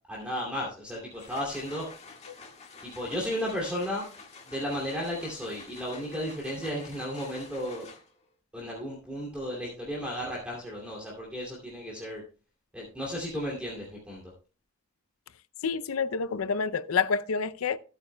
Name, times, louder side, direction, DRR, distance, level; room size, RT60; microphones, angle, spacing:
voice 1, 0.1-1.9 2.8-4.0 4.4-7.9 8.5-12.2 12.7-14.2, equal, 5° right, 2.6 m, -34 dB
sound 1, 1.0-8.3, left 4 dB, 30° left, 1.7 m, -49 dB
voice 2, 15.6-17.8, left 5 dB, 70° left, 0.5 m, -28 dB
16.0 x 8.9 x 2.2 m
head